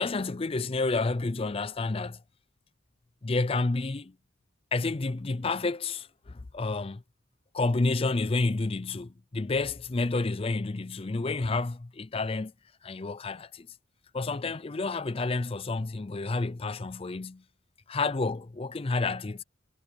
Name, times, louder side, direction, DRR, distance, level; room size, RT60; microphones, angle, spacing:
voice 1, 0.0-2.2 3.2-4.1 4.7-7.0 7.5-12.5 12.8-13.7 14.1-17.4 17.9-19.4, left 3 dB, 30° left, 0.5 m, -30 dB
head